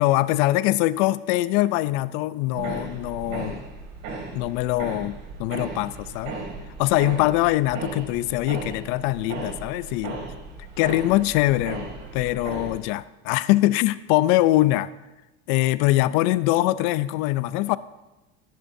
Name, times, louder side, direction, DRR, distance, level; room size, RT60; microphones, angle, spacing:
voice 1, 0.0-3.6 4.3-6.4 6.8-10.2 10.8-11.9 12.1-14.9 15.5-17.8, left 16 dB, 70° left, 17 dB, 0.5 m, -23 dB
sound 1, 2.5-12.8, right 3 dB, 70° right, 2.5 m, -36 dB
12.0 x 10.5 x 2.7 m, 1.0 s
supercardioid pair, 115°, 36 cm